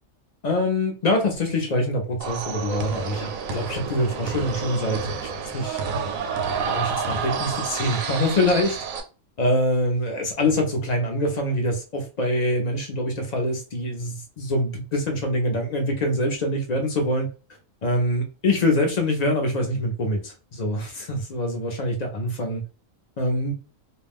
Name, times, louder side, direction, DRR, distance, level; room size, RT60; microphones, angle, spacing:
voice 1, 0.4-5.8 6.7-8.8 9.4-17.3 17.8-22.6 23.2-23.5, left 1 dB, 55° left, 2 dB, 0.4 m, -24 dB
sound 1, 2.2-9.0, right 6 dB, 90° right, 1.0 m, -29 dB
2.4 x 2.1 x 3.3 m, 0.33 s
omnidirectional pair, 1.4 m